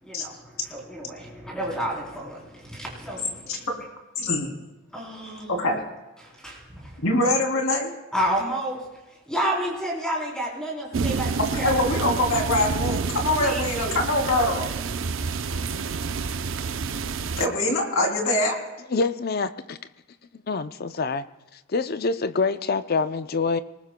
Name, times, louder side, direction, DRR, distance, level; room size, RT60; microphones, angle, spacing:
voice 1, 0.0-3.7 4.9-5.6 6.2-7.0 8.1-8.9 9.3-11.7 13.4-14.0, equal, 5° left, 3.5 m, -31 dB
voice 2, 4.2-4.5 5.5-5.8 7.0-7.9 11.5-14.7 17.4-18.6, left 1 dB, 80° left, 3.0 m, -23 dB
sound 1, 10.9-17.5, right 4 dB, 65° right, 0.6 m, -28 dB
voice 3, 18.9-19.8 20.5-21.3 21.7-23.6, left 4 dB, 45° left, 0.5 m, -25 dB
25.5 x 19.0 x 2.2 m
head